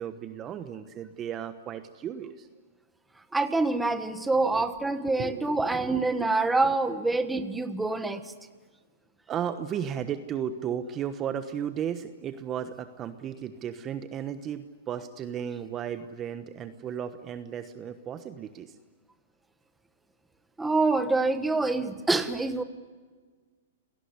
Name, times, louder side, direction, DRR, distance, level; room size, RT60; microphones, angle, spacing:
voice 1, 0.0-2.5 4.6-4.7 5.2-6.0 6.6-6.7 9.3-18.8, right 9 dB, 25° right, 11 dB, 1.1 m, -35 dB
voice 2, 3.3-8.2 20.6-22.6, right 3 dB, 5° right, 10 dB, 1.4 m, -26 dB
28.5 x 18.5 x 9.7 m, 1.5 s
hypercardioid pair, 145°, 0 cm